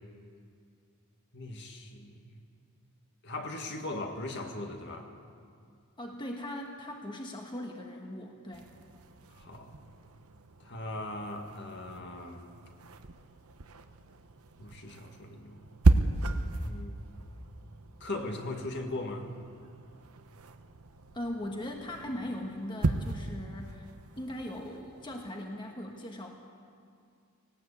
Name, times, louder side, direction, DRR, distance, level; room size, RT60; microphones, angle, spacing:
voice 1, 1.3-2.3 3.2-5.1 9.3-9.8 10.6-12.5 14.6-15.6 16.6-16.9 18.0-19.3, left 2 dB, 55° left, 3 dB, 2.0 m, -39 dB
voice 2, 6.0-8.7 21.1-23.9 24.2-26.3, left 1 dB, 20° left, 2 dB, 1.4 m, -39 dB
sound 1, 8.5-25.3, right 2 dB, 80° right, 0.9 m, -34 dB
18.5 x 18.5 x 8.4 m, 2.3 s
head